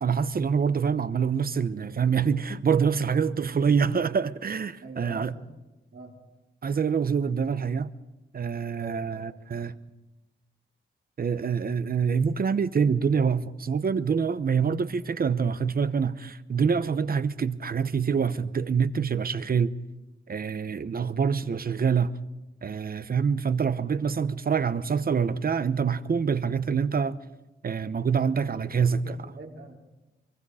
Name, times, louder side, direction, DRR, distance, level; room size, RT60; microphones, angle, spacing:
voice 1, 0.0-5.3 6.6-7.9 8.3-9.7 11.2-19.7 20.3-22.1 22.6-27.2 27.6-29.2, right 6 dB, 50° right, 0.9 m, -26 dB
voice 2, 4.8-5.5 5.9-6.2 8.7-9.2 28.5-29.8, right 3 dB, 70° right, 4.1 m, -44 dB
24.0 x 23.5 x 4.9 m
wide cardioid pair, 110°, 20 cm